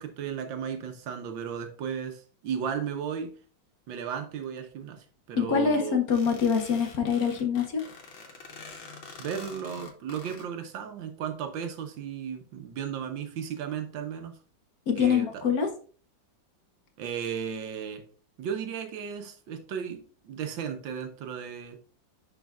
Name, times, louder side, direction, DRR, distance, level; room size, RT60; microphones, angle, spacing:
voice 1, 0.0-3.3 3.9-6.0 9.2-14.4 15.0-15.4 17.0-18.0 18.4-21.8, right 7 dB, 80° right, 6 dB, 1.6 m, -35 dB
voice 2, 5.3-7.8 14.9-15.7, left 6 dB, 55° left, 5 dB, 1.2 m, -25 dB
sound 1, 6.1-10.5, left 4 dB, 85° left, 1.9 m, -46 dB
10.5 x 4.5 x 2.4 m, 0.41 s
omnidirectional pair, 2.1 m